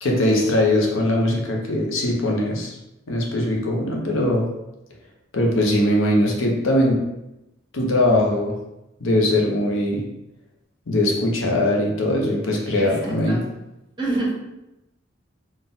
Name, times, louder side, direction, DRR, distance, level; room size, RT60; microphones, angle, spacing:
voice 1, 0.0-2.7 3.1-4.5 5.3-7.0 7.7-8.5 9.0-10.0 10.9-13.4, left 1 dB, 85° left, 0 dB, 0.8 m, -21 dB
voice 2, 12.6-13.4 14.0-14.3, right 2 dB, 25° right, -4 dB, 1.2 m, -27 dB
4.0 x 2.5 x 3.8 m, 0.91 s
head